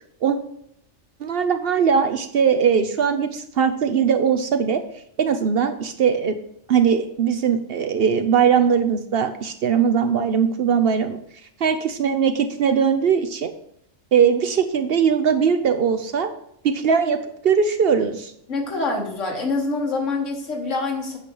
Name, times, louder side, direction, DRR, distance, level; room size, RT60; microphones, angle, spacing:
voice 1, 1.2-4.8 5.2-6.4 6.7-11.2 11.6-13.5 14.1-16.3 16.6-17.2 17.4-18.3, right 7 dB, 60° right, 8 dB, 0.7 m, -20 dB
voice 2, 18.5-21.2, left 3 dB, 75° left, 1 dB, 1.9 m, -25 dB
8.3 x 4.9 x 5.4 m, 0.74 s
omnidirectional pair, 1.3 m